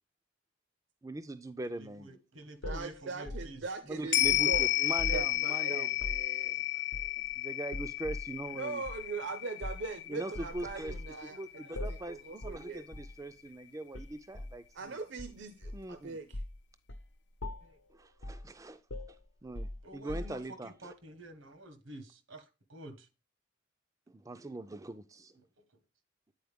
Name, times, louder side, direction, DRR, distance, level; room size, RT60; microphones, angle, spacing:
voice 1, 1.0-2.1 3.9-5.9 7.2-8.8 10.1-10.9 11.2-15.0 15.7-16.1 17.9-18.8 19.4-20.7 24.1-25.4, right 2 dB, 15° right, 0.4 m, -41 dB
voice 2, 1.7-3.6 5.7-5.9 6.4-7.5 8.4-8.6 8.9-9.0 9.2-9.3 9.6-9.8 10.3-10.4 10.6-10.7 11.3-11.7 12.0-12.1 13.4-13.5 17.6-17.8 19.8-23.1 25.6-25.7, right 1 dB, 90° right, 1.4 m, -51 dB
sound 1, 2.6-5.4 5.9-6.3 6.9-7.3 7.7-8.3 8.8-9.0 9.6-9.9 10.3-11.1 11.7-12.1 12.4-12.6 12.9-13.2 13.9-14.6 15.2-15.9 16.3-16.6 16.9-17.1 17.4-17.8 18.2-18.5 18.9-20.6, left 1 dB, 85° left, 0.9 m, -41 dB
voice 3, 2.6-6.6 8.5-11.4 11.9-12.9 14.7-16.4, right 4 dB, 65° right, 0.6 m, -41 dB
sound 2, 4.1-12.7 13.0-13.1, left 16 dB, 60° left, 0.6 m, -33 dB
9.3 x 4.2 x 3.5 m
head